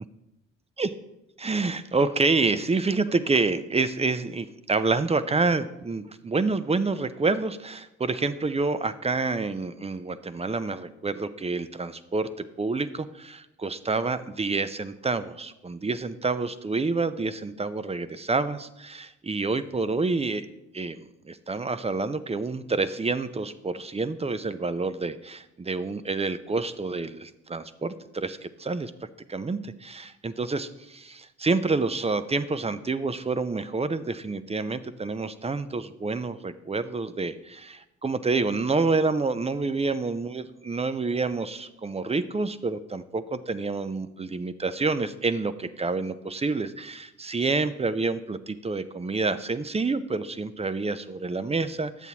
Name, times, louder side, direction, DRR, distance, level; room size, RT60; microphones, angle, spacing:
voice 1, 1.4-20.5 20.7-21.0 21.3-28.9 29.3-52.1, right 3 dB, 20° right, 13 dB, 0.6 m, -28 dB
11.0 x 8.0 x 2.9 m, 0.90 s
hypercardioid pair, 50°, 35 cm